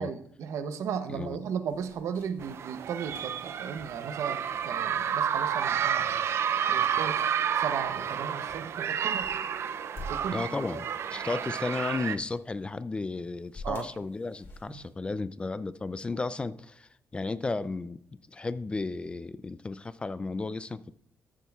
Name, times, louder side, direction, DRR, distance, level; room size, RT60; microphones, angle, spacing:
voice 1, 0.0-6.1 6.7-7.2 7.5-9.4 10.1-10.5 13.6-13.9 14.7-14.8, right 7 dB, 75° right, 0.8 m, -35 dB
sound 1, 1.7-14.9, left 1 dB, 50° left, 2.3 m, -51 dB
sound 2, 2.4-12.2, right 8 dB, 55° right, 0.4 m, -30 dB
voice 2, 10.3-10.9 11.1-18.0 18.3-20.9, left 3 dB, 20° left, 0.3 m, -34 dB
13.5 x 7.3 x 2.4 m
cardioid pair, 105°, 5 cm